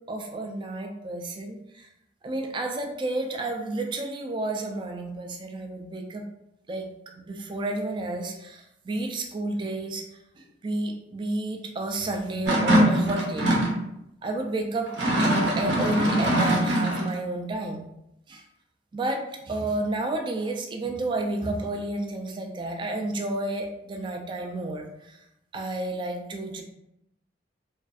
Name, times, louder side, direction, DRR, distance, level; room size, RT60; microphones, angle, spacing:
voice 1, 0.1-1.9 2.2-6.3 6.7-6.9 7.2-10.0 10.4-13.5 14.2-14.9 15.2-17.8 18.3-18.4 18.9-25.2 25.5-26.6, right 2 dB, 25° right, 3 dB, 0.3 m, -31 dB
sound 1, 12.5-13.8 14.9-17.1, right 1 dB, 65° right, 0.6 m, -22 dB
2.5 x 2.3 x 2.3 m, 0.81 s
head